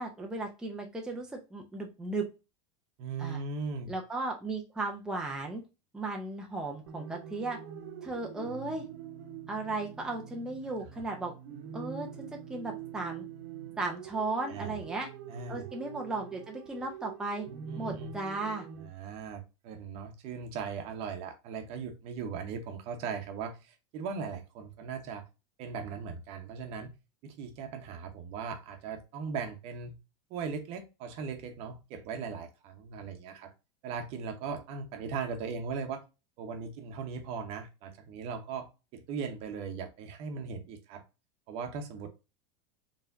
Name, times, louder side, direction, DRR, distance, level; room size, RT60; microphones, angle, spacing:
voice 1, 0.0-2.3 3.2-3.4 3.9-5.6 5.9-7.6 8.0-8.8 9.5-11.3 11.7-13.2 13.8-15.1 15.5-17.5 17.8-18.7, right 2 dB, 5° right, 0 dB, 0.6 m, -36 dB
voice 2, 3.0-3.9 14.5-14.8 15.3-15.7 17.7-18.1 18.8-25.2 25.6-26.9 27.2-30.0 30.3-33.5 33.8-36.0 36.4-38.7 38.9-41.0 41.5-42.1, right 5 dB, 45° right, 6 dB, 1.0 m, -38 dB
sound 1, 6.9-18.9, right 8 dB, 70° right, 1.0 m, -44 dB
4.5 x 3.2 x 2.5 m, 0.28 s
supercardioid pair, 150°, 14 cm